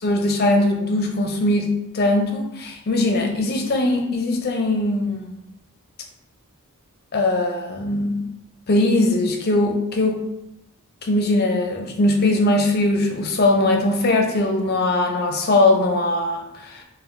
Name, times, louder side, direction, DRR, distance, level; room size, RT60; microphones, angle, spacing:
voice 1, 0.0-5.4 7.1-8.2 8.7-10.2 11.0-16.8, left 2 dB, 45° left, 3 dB, 0.5 m, -20 dB
4.2 x 2.1 x 2.5 m, 0.85 s
head